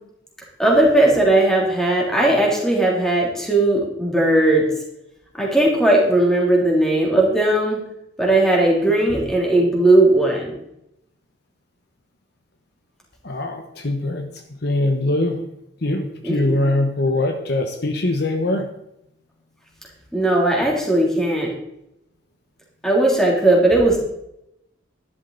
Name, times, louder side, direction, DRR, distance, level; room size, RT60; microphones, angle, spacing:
voice 1, 0.6-4.7 5.3-7.8 8.2-10.5 16.2-16.6 20.1-21.5 22.8-24.0, right 1 dB, 5° left, -2 dB, 3.1 m, -17 dB
voice 2, 13.2-15.4 15.8-18.7, left 2 dB, 55° left, 4 dB, 1.2 m, -22 dB
12.5 x 11.5 x 4.0 m, 0.81 s
head